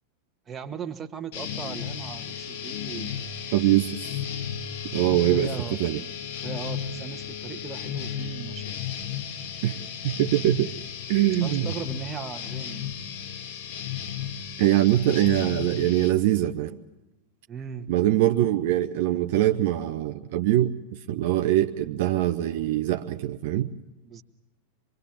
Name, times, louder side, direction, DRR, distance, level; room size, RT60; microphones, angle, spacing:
voice 1, 0.5-3.2 5.3-5.9 6.4-8.8 11.4-12.9 17.5-17.9 24.0-24.2, right 7 dB, 20° right, 7 dB, 1.6 m, -38 dB
sound 1, 1.3-16.1, left 8 dB, 50° left, 1.9 m, -34 dB
voice 2, 3.5-4.0 4.9-6.0 9.6-10.7 11.1-11.7 14.6-16.8 17.9-20.7 21.1-23.7, right 13 dB, 50° right, 7 dB, 0.7 m, -23 dB
25.0 x 22.5 x 7.4 m, 1.1 s
figure-of-eight pair, 90°, 0 cm